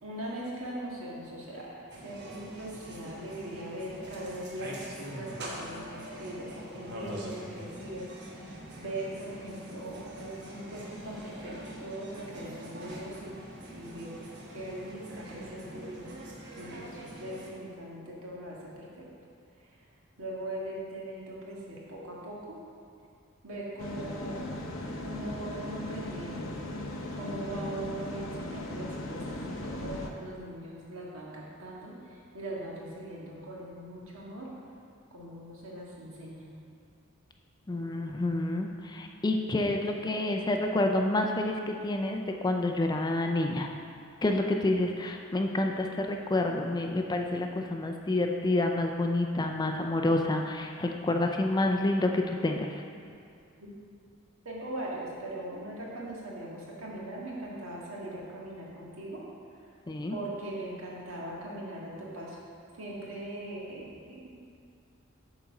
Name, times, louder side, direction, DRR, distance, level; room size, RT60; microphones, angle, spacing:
voice 1, 0.0-13.4 13.7-14.2 14.5-16.1 16.5-16.9 17.2-19.1 19.6-19.7 20.2-22.6 23.4-24.5 25.0-26.5 27.1-34.5 35.1-36.5 53.6-53.7 54.5-59.2 59.6-59.7 60.1-62.4 62.7-64.3, right 1 dB, 75° right, -4 dB, 1.7 m, -40 dB
sound 1, 1.9-17.5, right 1 dB, 55° right, 1.1 m, -44 dB
sound 2, 23.8-30.1, left 1 dB, 70° left, 0.7 m, -38 dB
voice 2, 37.7-43.7 44.2-52.7 59.9-60.2, left 2 dB, 20° left, 3 dB, 0.4 m, -28 dB
8.5 x 4.1 x 5.8 m, 2.3 s
head